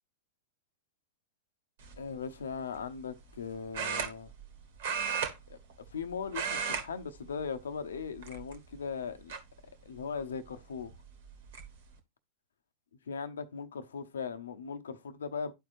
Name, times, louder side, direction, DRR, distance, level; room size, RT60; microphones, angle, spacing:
sound 1, 1.8-2.1 3.7-4.5 4.8-6.0 6.3-6.9 7.2-7.4 8.2-8.7 9.3-9.4 10.8-10.9 11.3-11.6, right 6 dB, 65° right, 1.6 m, -34 dB
voice 1, 2.0-4.3 5.5-5.6 5.9-9.3 9.8-10.9 13.1-15.5, left 6 dB, 80° left, 0.8 m, -39 dB
12.0 x 4.6 x 2.5 m
hypercardioid pair, 105°, 0 cm